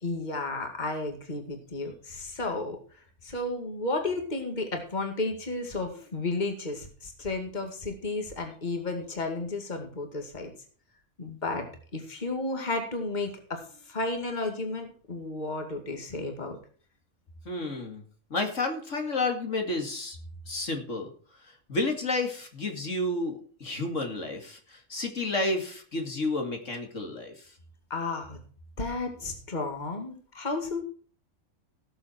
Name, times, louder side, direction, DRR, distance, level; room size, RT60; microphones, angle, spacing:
voice 1, 0.0-2.8 3.2-10.5 11.2-11.7 11.9-16.6 27.9-28.4 28.8-30.8, left 2 dB, 30° left, 4 dB, 2.4 m, -33 dB
voice 2, 17.5-18.0 18.3-20.2 20.5-21.1 21.7-27.3, left 2 dB, 60° left, 3 dB, 2.6 m, -31 dB
18.0 x 7.2 x 4.5 m, 0.43 s
omnidirectional pair, 1.5 m